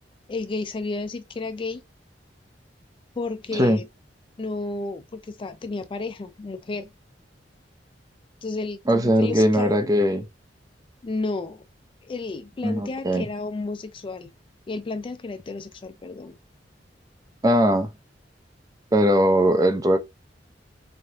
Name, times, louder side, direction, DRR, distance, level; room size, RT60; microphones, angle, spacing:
voice 1, 0.3-1.8 3.2-3.8 4.4-6.9 8.4-9.8 11.0-11.6 12.0-14.3 14.7-16.4, left 3 dB, 30° left, 0.3 m, -32 dB
voice 2, 8.9-10.3 12.6-13.3 17.4-17.9 18.9-20.0, equal, 20° right, 0.6 m, -20 dB
3.6 x 3.3 x 2.8 m
head